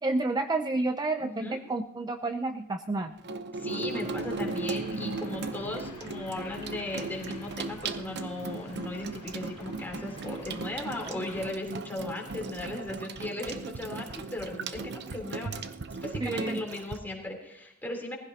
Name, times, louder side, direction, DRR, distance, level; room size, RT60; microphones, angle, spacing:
voice 1, 0.0-3.2 16.2-16.6, right 2 dB, 20° right, 7 dB, 0.5 m, -30 dB
voice 2, 1.2-1.6 3.5-15.7 16.0-18.2, left 2 dB, 10° left, -1 dB, 3.4 m, -37 dB
Water tap faucet / Sink (filling or washing), 3.2-17.0, right 3 dB, 50° right, 0.8 m, -37 dB
sound 1, 3.9-11.5, left 2 dB, 25° left, 4.4 m, -49 dB
19.5 x 15.5 x 2.9 m, 0.76 s
head